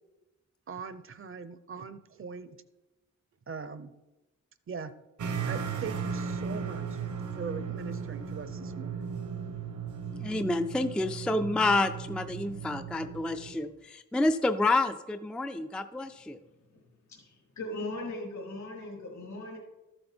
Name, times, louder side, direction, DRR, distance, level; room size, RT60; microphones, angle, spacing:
voice 1, 0.7-2.6 3.5-3.9 4.7-4.9 5.4-7.0 7.4-9.1, right 5 dB, 45° right, 12 dB, 0.7 m, -41 dB
sound 1, 5.2-13.6, right 6 dB, 80° right, 1.2 m, -36 dB
voice 2, 10.1-16.4, left 2 dB, 5° left, 9 dB, 0.3 m, -29 dB
voice 3, 17.1-19.6, left 2 dB, 75° left, 0 dB, 3.8 m, -39 dB
13.5 x 7.8 x 4.3 m, 1.0 s
wide cardioid pair, 140°, 29 cm